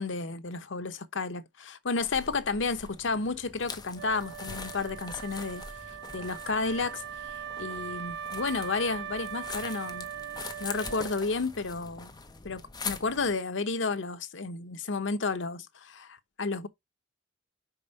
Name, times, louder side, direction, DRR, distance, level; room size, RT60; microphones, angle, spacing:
voice 1, 0.0-10.1 10.6-12.1 12.4-16.7, left 4 dB, 85° left, 0.9 m, -32 dB
sound 1, 2.0-13.4, left 4 dB, 20° left, 1.0 m, -43 dB
Wind instrument woodwind instrument, 3.9-11.5, right 8 dB, 65° right, 1.4 m, -40 dB
5.2 x 5.2 x 5.4 m
head